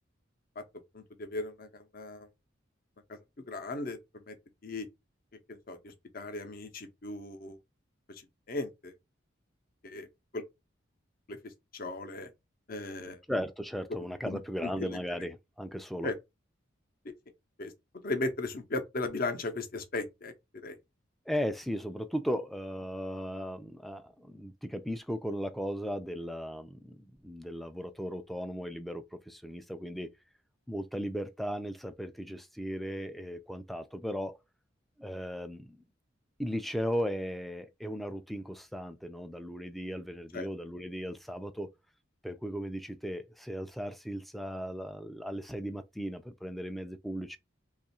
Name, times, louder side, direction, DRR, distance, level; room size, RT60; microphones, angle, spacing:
voice 1, 0.9-2.3 3.1-3.2 3.5-4.4 4.6-4.9 5.5-7.6 8.1-8.9 9.8-10.1 10.3-10.4 11.3-12.3 12.7-13.2 14.2-15.0 16.0-16.2 17.6-17.7 18.0-20.3 20.6-20.8 40.3-40.5, left 2 dB, 50° left, 0.6 m, -37 dB
voice 2, 13.3-16.1 21.3-30.1 30.7-34.4 35.0-35.8 36.4-41.7 42.2-47.4, equal, ahead, 0.3 m, -36 dB
3.0 x 2.4 x 4.2 m
head